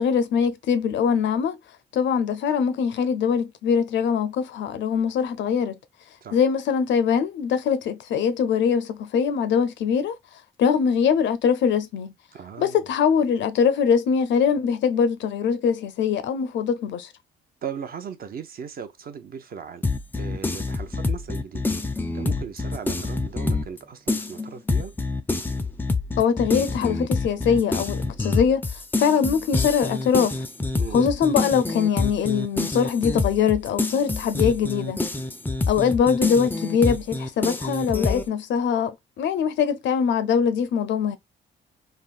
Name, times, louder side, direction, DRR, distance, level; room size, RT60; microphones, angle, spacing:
voice 1, 0.0-1.6 1.9-5.8 6.3-10.2 10.6-12.1 12.6-17.1 26.2-28.6 29.0-30.4 30.9-35.0 35.7-41.2, left 7 dB, 70° left, 0.5 m, -22 dB
voice 2, 12.3-12.8 17.6-19.8 20.2-21.7 22.1-24.9 30.8-31.1, right 7 dB, 50° right, 0.6 m, -37 dB
sound 1, 19.8-23.8 24.1-38.3, left 3 dB, 10° left, 0.4 m, -27 dB
3.4 x 2.1 x 2.4 m
cardioid pair, 90°, 20 cm